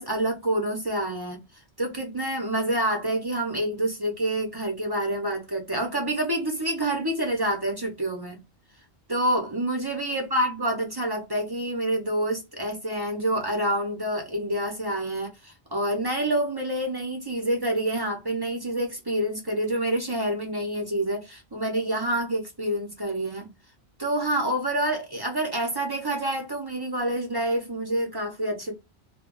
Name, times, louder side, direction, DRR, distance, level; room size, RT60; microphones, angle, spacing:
voice 1, 0.0-1.4 1.8-8.4 9.1-23.5 24.0-28.7, right 1 dB, 30° right, 0.5 m, -27 dB
2.2 x 2.1 x 3.6 m
omnidirectional pair, 1.1 m